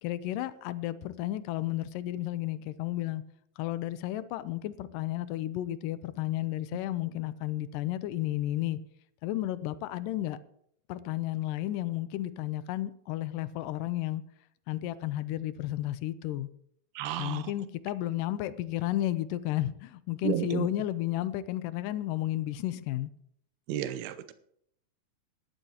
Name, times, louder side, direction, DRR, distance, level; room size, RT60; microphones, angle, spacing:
voice 1, 0.0-3.2 3.6-8.8 9.2-10.4 10.9-14.2 14.7-16.5 17.2-23.1, left 14 dB, 80° left, 2.0 m, -32 dB
voice 2, 17.0-17.4 20.2-20.7 23.7-24.3, right 12 dB, 85° right, 2.8 m, -32 dB
17.5 x 12.0 x 2.9 m
omnidirectional pair, 4.4 m